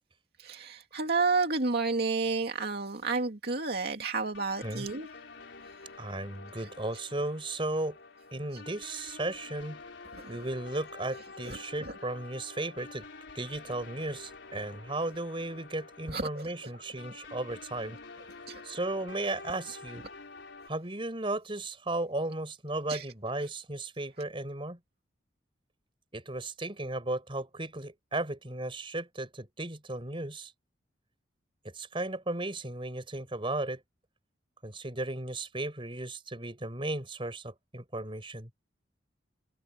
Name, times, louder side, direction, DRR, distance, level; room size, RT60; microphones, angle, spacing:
voice 1, 0.4-5.1 8.5-8.6 10.1-10.3 11.5-11.6 16.1-16.5 18.5-18.6 22.9-23.1, right 4 dB, 60° right, 2.4 m, -31 dB
sound 1, 4.3-20.7, left 3 dB, 80° left, 4.1 m, -48 dB
voice 2, 6.0-8.0 8.3-9.8 10.3-13.1 13.3-18.0 18.6-20.0 20.7-24.8 26.1-30.5 31.6-33.8 34.6-38.5, right 2 dB, 30° right, 4.7 m, -35 dB
head